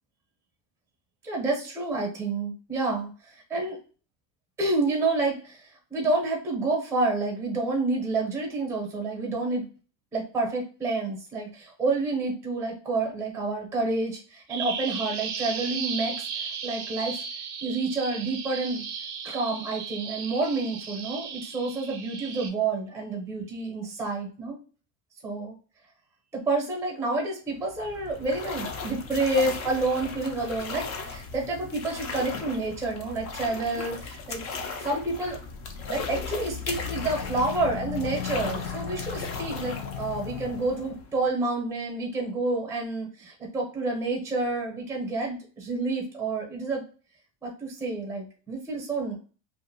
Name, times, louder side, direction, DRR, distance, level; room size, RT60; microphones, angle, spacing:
voice 1, 1.2-3.8 4.6-9.6 10.1-17.2 17.6-18.8 19.2-24.6 25.2-25.5 26.3-34.4 34.8-35.4 35.9-46.8 47.4-49.2, right 3 dB, 5° right, 0 dB, 0.7 m, -29 dB
Bird vocalization bird call bird song, 14.5-22.5, right 6 dB, 40° right, 0.5 m, -35 dB
sound 1, 27.5-41.3, left 4 dB, 35° left, 0.5 m, -37 dB
sound 2, 35.4-41.0, left 7 dB, 65° left, 0.8 m, -37 dB
2.6 x 2.4 x 2.6 m, 0.38 s
supercardioid pair, 140°, 47 cm